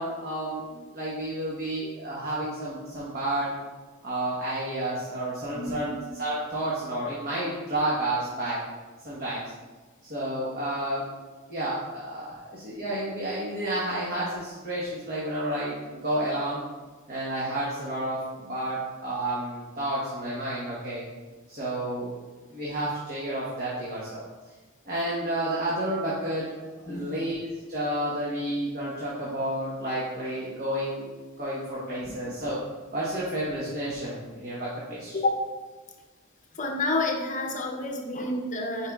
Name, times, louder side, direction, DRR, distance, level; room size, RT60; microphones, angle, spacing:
voice 1, 0.0-3.5 4.0-8.6 9.0-9.4 10.0-11.0 11.5-16.6 17.1-21.0 21.5-22.1 22.5-24.2 24.8-26.6 26.8-31.1 31.4-32.6 32.9-35.2, right 1 dB, 45° right, -7 dB, 1.2 m, -31 dB
voice 2, 5.5-5.9 26.9-27.2 32.0-32.3 35.1-35.3 36.5-38.9, left 2 dB, 35° left, 2 dB, 0.7 m, -29 dB
9.0 x 4.5 x 2.3 m, 1.3 s
head